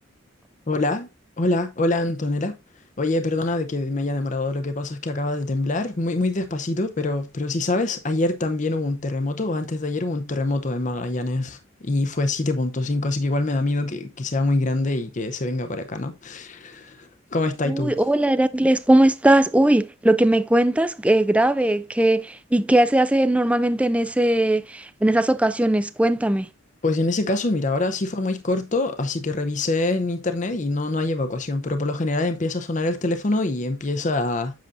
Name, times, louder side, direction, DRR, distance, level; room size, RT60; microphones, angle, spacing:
voice 1, 0.7-1.1 1.4-2.5 3.0-17.9 26.8-34.6, left 2 dB, 35° left, 0.6 m, -25 dB
voice 2, 17.7-26.5, right 1 dB, 5° right, 0.3 m, -19 dB
7.6 x 6.8 x 2.5 m
head